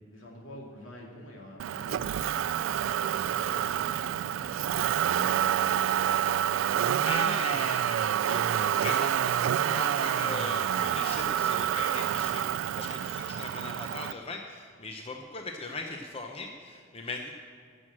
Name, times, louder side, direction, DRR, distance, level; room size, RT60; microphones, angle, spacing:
voice 1, 0.1-2.8 3.1-6.2, equal, 80° left, -2 dB, 2.5 m, -47 dB
Motor vehicle (road), 1.6-14.1, right 10 dB, 80° right, 0.3 m, -28 dB
voice 2, 6.9-17.3, left 3 dB, 30° left, 2 dB, 0.7 m, -39 dB
13.5 x 6.2 x 7.5 m, 2.2 s
head